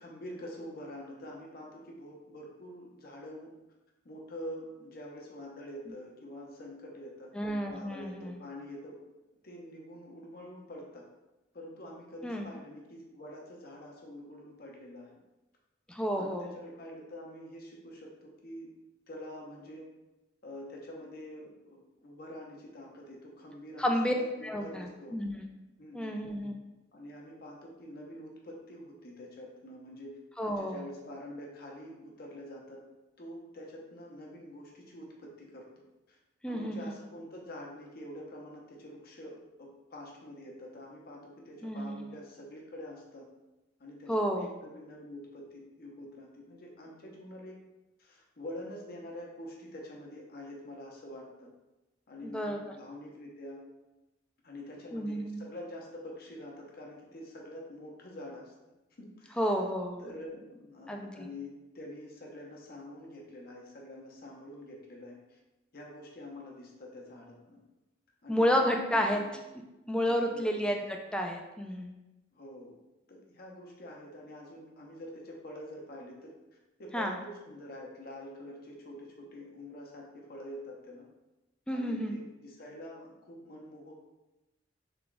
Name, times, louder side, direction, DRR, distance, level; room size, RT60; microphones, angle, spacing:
voice 1, 0.0-3.5 4.0-7.3 7.7-9.0 9.4-11.1 11.5-15.1 16.1-18.7 19.1-19.9 20.4-25.2 25.8-26.3 26.9-30.2 30.4-32.8 33.2-36.2 36.5-43.3 43.8-47.5 48.0-51.5 52.1-53.6 54.4-58.5 59.0-59.5 60.0-65.4 65.7-67.6 68.2-69.4 70.1-70.7 72.3-72.8 73.1-76.3 76.8-81.1 81.7-84.0, left 1 dB, 55° left, -1 dB, 0.7 m, -46 dB
voice 2, 7.4-8.4 12.2-12.5 15.9-16.5 23.8-24.1 24.4-25.5 25.9-26.5 30.4-30.8 36.4-36.9 41.6-42.1 44.1-44.5 52.2-52.6 54.9-55.4 59.4-60.0 60.9-61.3 68.3-69.2 69.9-71.9 76.9-77.2 81.7-82.1, equal, 5° left, 2 dB, 0.3 m, -31 dB
3.5 x 2.3 x 3.8 m, 1.0 s
head